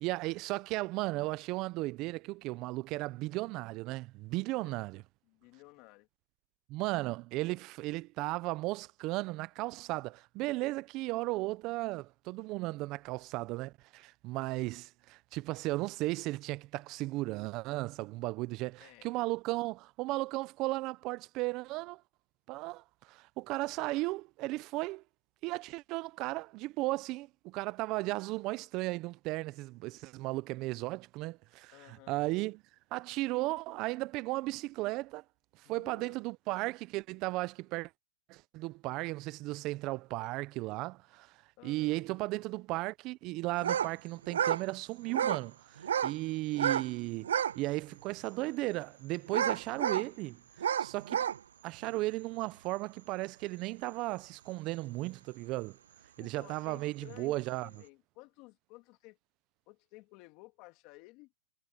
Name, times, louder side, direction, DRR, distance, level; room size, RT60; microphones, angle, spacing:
voice 1, 0.0-5.0 6.7-22.0 22.5-25.0 25.4-32.6 32.9-35.2 35.7-37.9 38.3-41.3 41.6-50.4 50.8-51.3 51.6-55.8 56.2-57.7, right 20 dB, 30° right, 0.6 m, -35 dB
voice 2, 5.3-6.1 18.8-19.1 31.7-32.2 35.6-36.2 41.6-42.0 56.2-59.2 59.7-61.3, left 22 dB, 35° left, 1.9 m, -55 dB
sound 1, 43.6-43.9 44.2-44.6 45.1-45.4 45.8-46.2 46.5-46.9 47.2-47.6 48.1-48.2 49.3-50.1 50.6-51.4, right 9 dB, 75° right, 0.3 m, -30 dB
hypercardioid pair, 145°, 0 cm